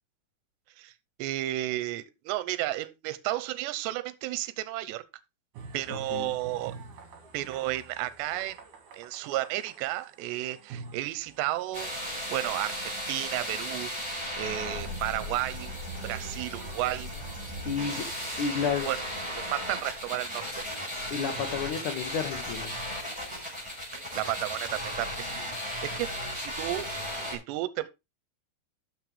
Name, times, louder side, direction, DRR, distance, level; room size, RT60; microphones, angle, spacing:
voice 1, 1.2-5.0 5.7-6.7 7.3-8.6 8.9-13.9 14.4-15.7 16.0-17.1 17.8-19.0 19.3-20.6 23.9-25.5 25.8-26.9 27.3-27.9, right 15 dB, 80° right, 2.9 m, -33 dB
sound 1, 5.5-17.5, right 5 dB, 55° right, 2.8 m, -49 dB
voice 2, 5.9-6.3 17.6-18.0 18.4-18.9 21.1-22.7, left 6 dB, 85° left, 1.7 m, -31 dB
sound 2, 11.7-27.4, equal, 5° right, 4.2 m, -36 dB
12.5 x 6.5 x 3.3 m
omnidirectional pair, 5.1 m